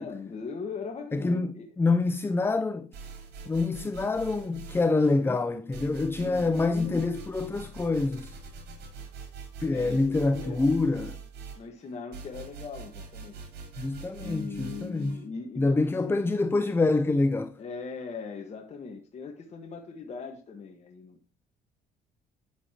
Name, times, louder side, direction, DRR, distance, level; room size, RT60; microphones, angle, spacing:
voice 1, 0.0-1.7 4.9-5.4 6.2-7.0 9.7-10.7 11.6-13.6 14.2-16.2 17.6-21.2, left 4 dB, 40° left, 1.5 m, -40 dB
voice 2, 1.1-2.9 3.5-8.3 9.6-11.2 13.8-15.3 15.6-17.5, left 3 dB, 15° left, 0.5 m, -26 dB
sound 1, 2.9-5.2 5.7-15.2, right 4 dB, 75° right, 4.2 m, -44 dB
9.5 x 8.2 x 2.9 m
cardioid pair, 110°, 17 cm